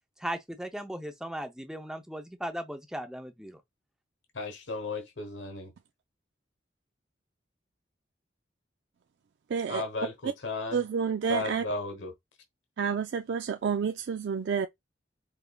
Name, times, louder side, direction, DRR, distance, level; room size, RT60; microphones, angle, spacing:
voice 1, 0.2-3.6, right 1 dB, 5° right, 0.6 m, -37 dB
voice 2, 4.3-5.7 9.7-10.8 11.3-12.1, left 3 dB, 80° left, 1.0 m, -35 dB
voice 3, 9.5-9.8 10.7-11.6 12.8-14.7, right 6 dB, 70° right, 0.4 m, -29 dB
4.9 x 3.4 x 2.3 m
head